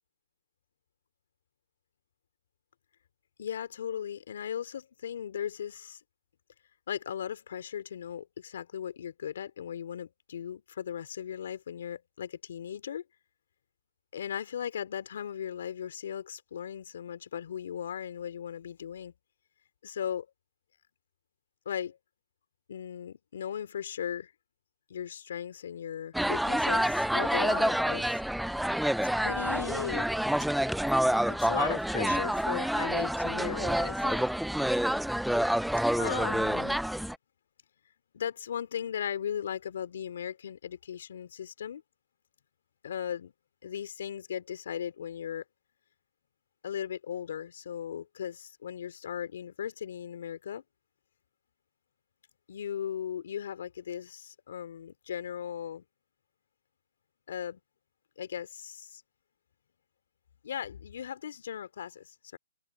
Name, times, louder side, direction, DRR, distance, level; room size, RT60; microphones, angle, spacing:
voice 1, 3.4-6.0 6.9-13.0 14.1-19.1 19.8-20.3 21.6-22.0 22.7-24.3 24.9-28.6 29.2-30.1 31.3-34.2 36.0-36.8 38.1-41.8 42.8-43.3 43.6-45.4 46.6-50.6 52.5-55.8 57.3-57.6 58.2-59.0 60.4-62.4, left 9 dB, 65° left, 2.8 m, -37 dB
sound 1, 26.1-37.2, equal, ahead, 0.5 m, -28 dB
hypercardioid pair, 140°, 0 cm